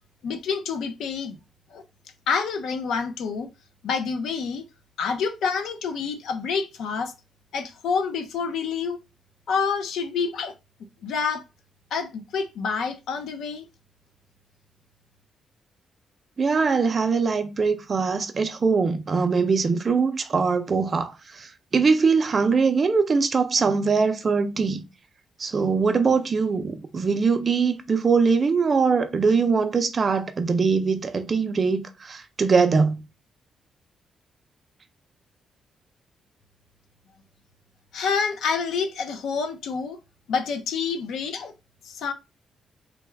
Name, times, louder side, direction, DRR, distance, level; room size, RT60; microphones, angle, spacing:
voice 1, 0.2-1.4 1.7-1.8 2.3-3.5 3.8-4.6 5.0-7.1 7.5-9.0 9.5-10.5 11.0-11.4 11.9-13.6 37.9-40.0 40.3-41.5 41.8-42.1, left 5 dB, 85° left, 0.6 m, -27 dB
voice 2, 16.4-24.8 25.4-33.0, right 5 dB, 35° right, 0.5 m, -22 dB
3.3 x 2.3 x 3.3 m
cardioid pair, 145°, 0 cm